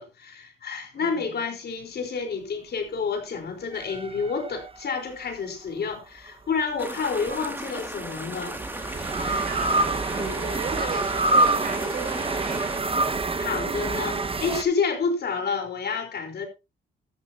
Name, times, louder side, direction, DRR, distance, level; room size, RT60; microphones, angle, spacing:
voice 1, 0.0-8.6 9.2-9.5 13.4-16.5, left 5 dB, 55° left, 4.1 m, -29 dB
voice 2, 0.9-1.3 9.5-12.7, right 4 dB, 45° right, 5.9 m, -36 dB
sound 1, 3.7-5.2 7.1-14.6, right 2 dB, 30° right, 1.4 m, -27 dB
sound 2, 6.8-12.8, right 1 dB, 10° right, 2.4 m, -36 dB
13.0 x 13.0 x 2.8 m
cardioid pair, 90°, 20 cm